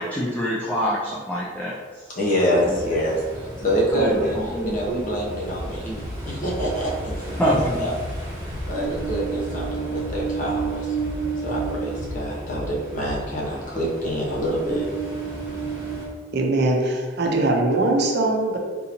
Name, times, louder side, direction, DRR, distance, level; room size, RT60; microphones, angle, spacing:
voice 1, 0.0-1.8 2.1-2.2 4.0-4.8 7.4-7.8, equal, 10° left, -7 dB, 0.4 m, -25 dB
voice 2, 2.1-7.9 8.6-11.0 11.4-14.9, equal, 45° left, -4 dB, 0.8 m, -26 dB
Ocean, 2.5-16.1, right 4 dB, 20° right, 1.2 m, -32 dB
sound 1, 5.5-5.7 6.0-9.7 10.0-13.4, left 1 dB, 85° left, 0.6 m, -36 dB
voice 3, 16.3-18.6, right 2 dB, 60° right, 1 dB, 0.5 m, -21 dB
3.7 x 2.7 x 2.9 m, 1.4 s
head